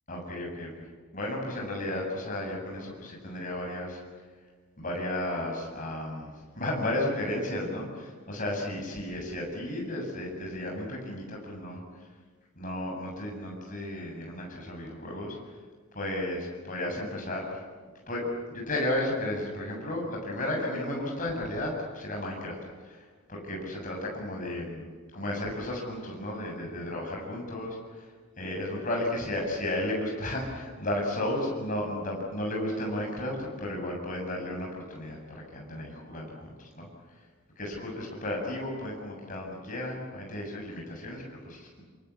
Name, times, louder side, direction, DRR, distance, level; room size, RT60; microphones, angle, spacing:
voice 1, 0.1-0.7 1.1-4.0 4.8-11.8 12.6-15.4 15.9-17.6 18.1-22.6 22.8-24.9 25.1-28.1 28.4-35.2 35.5-36.9 37.6-41.8, left 1 dB, 35° left, 0 dB, 7.7 m, -33 dB
26.5 x 26.0 x 8.6 m, 1.5 s
head